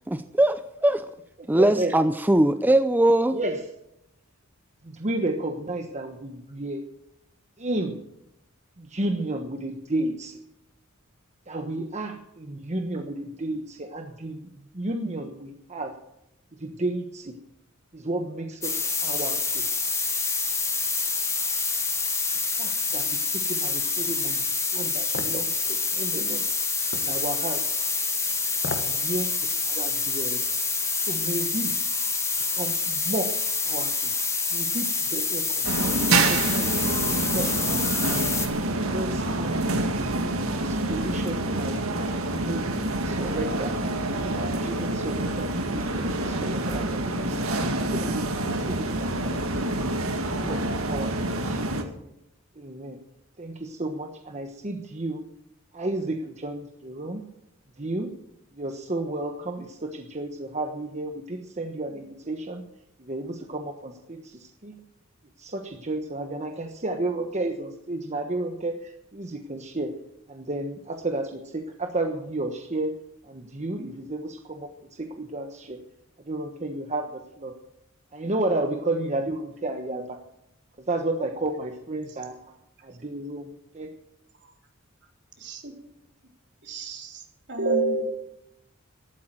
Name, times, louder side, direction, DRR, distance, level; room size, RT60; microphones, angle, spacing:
voice 1, 0.1-1.0 1.5-3.4, right 1 dB, 10° right, 10 dB, 0.5 m, -21 dB
voice 2, 1.5-1.9 3.3-3.6 4.8-6.8 7.6-8.0 8.8-10.4 11.5-15.9 16.5-17.4 17.9-19.7 22.6-24.5 24.7-26.4 27.0-27.8 28.7-30.5 31.1-31.7 32.5-33.3 33.6-34.1 34.5-37.5 38.7-39.7 40.5-43.7 44.1-47.4 47.8-49.7 50.4-52.1 52.6-53.0 53.4-55.2 55.7-57.3 57.8-58.1 58.5-62.6 63.0-64.8 65.4-69.9 70.3-73.0 73.2-75.8 76.2-77.6 78.1-80.2 80.8-82.6 82.8-83.9, right 2 dB, 35° right, 4 dB, 1.3 m, -32 dB
sound 1, 18.6-38.5, left 4 dB, 15° left, 2.1 m, -27 dB
sound 2, 25.1-25.4 26.9-27.1 28.5-29.0 29.4-29.5, left 3 dB, 60° left, 1.8 m, -33 dB
sound 3, 35.6-51.8, right 2 dB, 80° right, 2.0 m, -27 dB
voice 3, 85.4-85.7 86.6-87.2 87.5-88.0, right 3 dB, 55° right, 2 dB, 3.6 m, -27 dB
13.5 x 12.0 x 7.7 m, 0.81 s
head